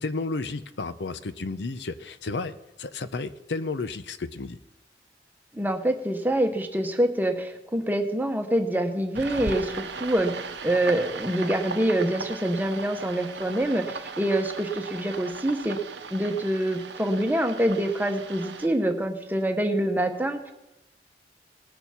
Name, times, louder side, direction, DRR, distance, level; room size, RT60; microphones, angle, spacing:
voice 1, 0.0-2.5 2.8-4.6, left 3 dB, 80° left, 11 dB, 0.7 m, -32 dB
voice 2, 5.5-10.3 10.6-15.8 16.1-20.5, right 1 dB, 10° right, 6 dB, 1.0 m, -25 dB
sound 1, 9.1-18.7, right 4 dB, 85° right, 0.8 m, -38 dB
19.0 x 6.9 x 5.8 m, 0.94 s
head